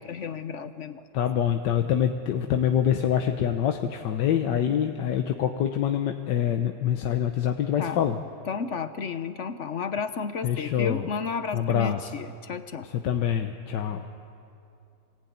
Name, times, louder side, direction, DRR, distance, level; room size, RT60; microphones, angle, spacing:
voice 1, 0.0-1.1 7.8-8.0 8.5-12.9, left 5 dB, 50° left, 10 dB, 1.0 m, -32 dB
voice 2, 1.1-8.2 10.4-11.1 11.5-12.0 12.9-14.1, left 9 dB, 90° left, 5 dB, 1.6 m, -25 dB
25.5 x 19.0 x 9.4 m, 2.6 s
omnidirectional pair, 1.8 m